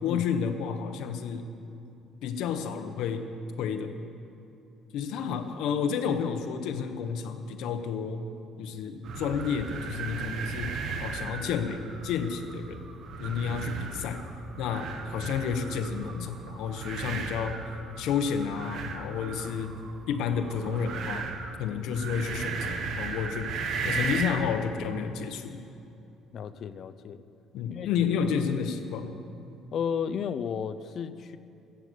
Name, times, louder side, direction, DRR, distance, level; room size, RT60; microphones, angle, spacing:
voice 1, 0.0-1.5 2.2-3.3 3.6-3.9 4.9-8.3 8.6-12.8 13.2-14.2 14.6-17.6 18.0-19.7 20.1-21.3 21.6-23.6 23.8-25.6 27.5-29.2, left 7 dB, 75° left, 7 dB, 1.1 m, -31 dB
sound 1, 9.0-24.5, right 4 dB, 60° right, 1.2 m, -36 dB
voice 2, 26.3-27.2 27.7-27.9 28.2-28.3 29.7-31.4, left 7 dB, 50° left, 12 dB, 0.6 m, -33 dB
14.0 x 8.3 x 8.1 m, 2.8 s
cardioid pair, 135°, 0 cm